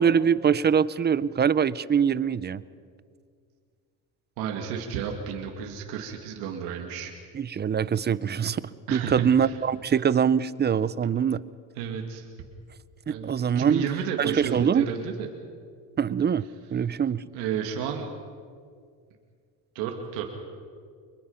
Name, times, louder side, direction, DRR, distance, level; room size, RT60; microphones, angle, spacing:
voice 1, 0.0-2.6 7.3-8.6 8.9-11.4 13.1-13.9 14.2-14.9 16.0-17.2, right 7 dB, 30° right, 18 dB, 0.6 m, -23 dB
voice 2, 4.4-7.1 8.9-9.6 11.8-12.3 13.1-13.3 13.5-15.3 17.3-18.1 19.7-20.2, right 7 dB, 90° right, 2 dB, 2.5 m, -32 dB
25.5 x 22.0 x 5.7 m, 2.1 s
cardioid pair, 100°, 37 cm